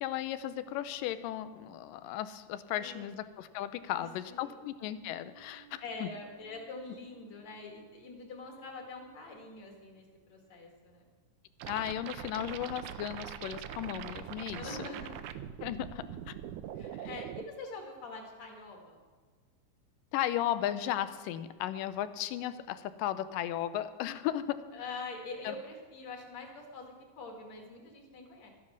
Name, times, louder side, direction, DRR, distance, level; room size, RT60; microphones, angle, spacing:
voice 1, 0.0-6.1 11.7-14.8 15.6-16.4 17.0-17.2 20.1-24.6 25.4-25.6, left 12 dB, 85° left, 13 dB, 2.3 m, -35 dB
voice 2, 2.8-3.1 4.0-4.6 5.8-11.1 14.5-15.1 16.8-19.0 24.7-28.5, left 3 dB, 55° left, 1 dB, 3.1 m, -45 dB
sound 1, 4.1-10.5, right 6 dB, 60° right, 2.0 m, -63 dB
sound 2, 11.6-17.4, right 10 dB, 80° right, 1.9 m, -42 dB
13.0 x 9.6 x 6.3 m, 1.5 s
omnidirectional pair, 3.8 m